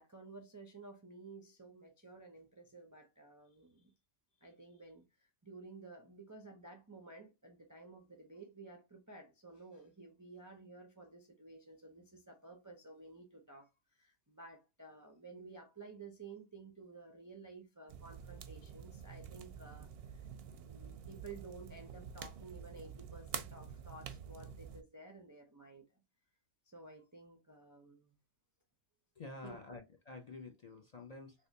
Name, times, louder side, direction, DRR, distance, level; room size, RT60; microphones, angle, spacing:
voice 1, 0.0-3.9 4.4-20.3 20.6-26.0 26.7-28.2 29.4-29.6, right 3 dB, 30° right, 0.3 m, -54 dB
sound 1, 17.9-24.8, right 8 dB, 60° right, 0.7 m, -48 dB
voice 2, 29.2-31.5, left 3 dB, 50° left, 0.5 m, -49 dB
3.3 x 2.9 x 2.6 m
omnidirectional pair, 1.3 m